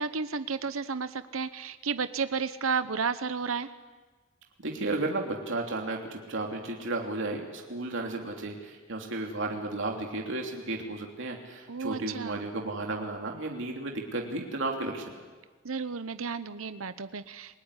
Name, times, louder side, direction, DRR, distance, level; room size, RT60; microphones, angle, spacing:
voice 1, 0.0-3.7 11.7-12.4 15.6-17.6, right 5 dB, 90° right, 12 dB, 1.0 m, -32 dB
voice 2, 4.6-15.2, right 2 dB, 65° right, 1 dB, 3.1 m, -33 dB
30.0 x 19.5 x 9.9 m, 1.4 s
head